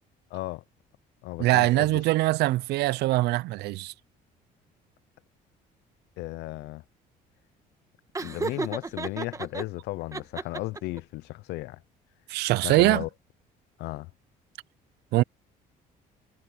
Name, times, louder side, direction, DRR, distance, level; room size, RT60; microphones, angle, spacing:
voice 1, 0.3-0.6 1.2-2.0 6.2-6.8 8.2-11.8 12.6-13.1 13.8-14.1, left 19 dB, 80° left, 0.5 m, -35 dB
voice 2, 1.4-3.9 12.3-13.0 15.1-15.2, right 18 dB, 80° right, 0.5 m, -23 dB
Laughter, 8.1-9.6 10.1-11.0, right 3 dB, 20° right, 1.2 m, -33 dB
cardioid pair, 110°, 17 cm